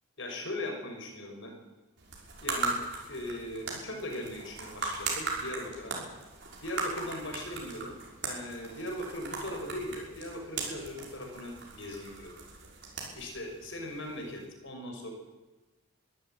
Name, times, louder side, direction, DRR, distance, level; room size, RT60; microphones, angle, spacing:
voice 1, 0.2-1.6 2.4-2.8 3.1-6.0 6.6-8.0 8.2-12.4 13.1-15.1, left 1 dB, 60° left, 3 dB, 5.8 m, -39 dB
sound 1, 2.0-14.5, right 4 dB, 55° right, 6.0 m, -39 dB
24.0 x 14.0 x 9.2 m, 1.1 s
head